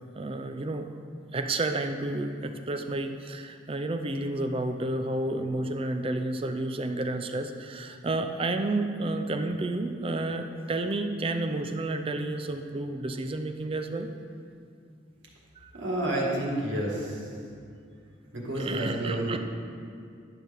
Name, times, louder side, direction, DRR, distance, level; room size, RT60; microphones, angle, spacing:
voice 1, 0.1-0.9 1.3-14.1 15.6-15.7 18.6-19.4, right 2 dB, 30° right, 7 dB, 0.4 m, -31 dB
voice 2, 15.7-17.2 18.3-19.4, right 1 dB, 90° right, -3 dB, 1.7 m, -30 dB
10.5 x 5.8 x 3.5 m, 2.3 s
head